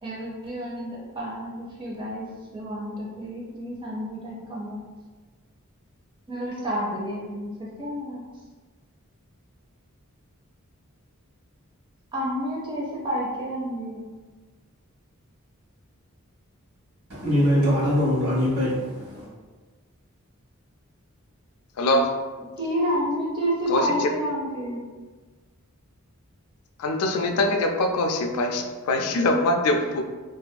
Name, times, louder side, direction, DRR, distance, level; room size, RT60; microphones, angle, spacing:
voice 1, 0.0-4.8 6.3-8.2 12.1-14.0 22.6-24.8, equal, 20° right, -5 dB, 0.6 m, -30 dB
voice 2, 17.1-19.3, equal, 90° right, -7 dB, 1.1 m, -22 dB
voice 3, 21.8-22.2 23.7-24.1 26.8-30.0, left 2 dB, 75° left, 5 dB, 0.3 m, -23 dB
2.6 x 2.4 x 2.2 m, 1.4 s
head